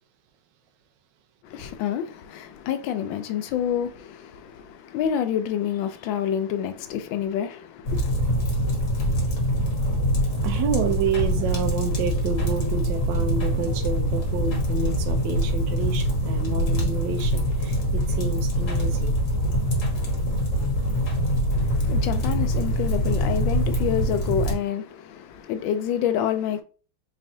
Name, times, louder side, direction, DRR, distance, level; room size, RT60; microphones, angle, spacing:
voice 1, 1.4-8.1 21.5-26.6, left 9 dB, 75° left, 1.3 m, -28 dB
sound 1, 7.9-24.5, equal, 45° left, 1.3 m, -24 dB
voice 2, 10.4-19.2, right 6 dB, 70° right, 1.3 m, -29 dB
4.2 x 3.1 x 2.6 m
omnidirectional pair, 2.2 m